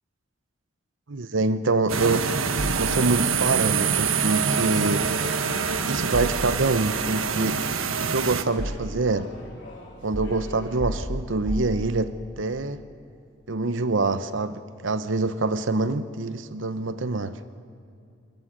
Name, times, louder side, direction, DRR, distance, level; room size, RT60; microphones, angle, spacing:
voice 1, 1.1-2.3 2.8-5.1 5.8-7.6 8.0-9.3 10.0-12.8 13.5-17.4, right 3 dB, 65° right, 13 dB, 0.8 m, -25 dB
sound 1, 1.9-8.4, right 6 dB, 85° right, 1.3 m, -25 dB
sound 2, 2.6-3.5 6.1-7.0 7.9-9.2 10.1-12.4, equal, ahead, 2.4 m, -33 dB
sound 3, 3.6-11.0, left 1 dB, 60° left, 4.5 m, -44 dB
28.0 x 13.5 x 9.8 m, 2.6 s
head